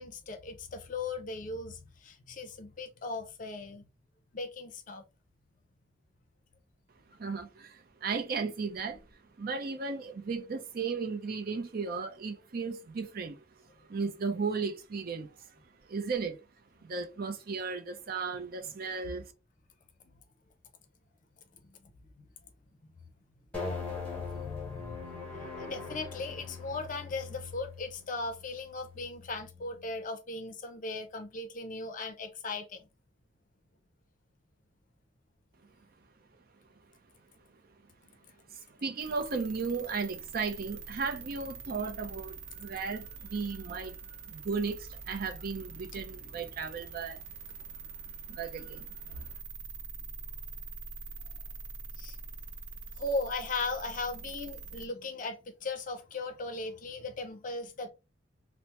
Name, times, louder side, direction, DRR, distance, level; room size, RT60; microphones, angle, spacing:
voice 1, 0.0-3.9 4.3-5.1 21.5-22.3 23.5-32.9 49.1-49.2 52.0-52.2 52.9-57.9, left 3 dB, 45° left, 0.5 m, -38 dB
voice 2, 7.2-9.0 9.4-13.4 13.9-15.3 15.9-16.4 16.8-19.3 38.5-44.0 44.2-47.2 48.3-49.3, right 4 dB, 50° right, 0.5 m, -35 dB
sound 1, 23.5-30.0, left 4 dB, 10° left, 1.1 m, -41 dB
sound 2, 39.0-54.9, right 4 dB, 85° right, 0.7 m, -45 dB
2.9 x 2.0 x 3.0 m
head